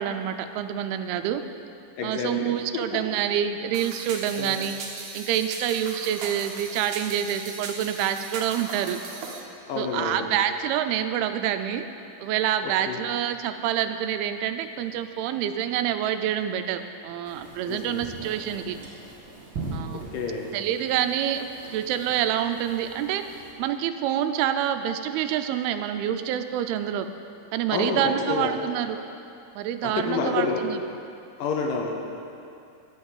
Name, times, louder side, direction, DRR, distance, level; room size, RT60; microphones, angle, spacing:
voice 1, 0.0-1.4 2.0-4.8 5.1-9.0 9.8-11.9 12.2-18.8 19.7-20.1 20.5-27.1 27.5-29.0 29.5-30.8, right 10 dB, 90° right, 9 dB, 2.5 m, -27 dB
voice 2, 2.0-3.0 4.3-4.6 9.7-10.3 12.6-13.0 17.7-18.0 19.9-20.5 27.7-28.5 29.8-30.7 31.4-32.0, left 4 dB, 75° left, 1 dB, 2.3 m, -29 dB
sound 1, 3.7-9.4, right 4 dB, 65° right, 2.3 m, -38 dB
sound 2, 17.2-23.5, right 3 dB, 40° right, 2.0 m, -41 dB
11.0 x 5.4 x 8.2 m, 2.6 s
omnidirectional pair, 4.3 m